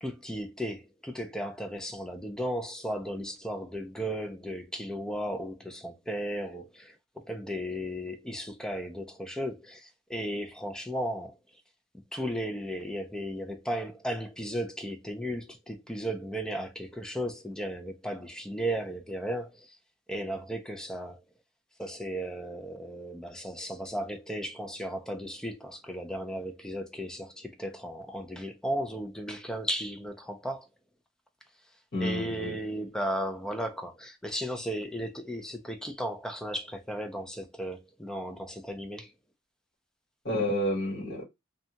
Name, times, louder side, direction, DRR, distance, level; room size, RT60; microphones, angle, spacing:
voice 1, 0.0-11.3 12.1-19.8 20.1-21.2 21.8-30.7 32.0-39.1, equal, 5° left, 0.3 m, -35 dB
voice 2, 31.9-32.6 40.2-41.2, left 1 dB, 55° left, 1.2 m, -30 dB
2.6 x 2.2 x 2.7 m
head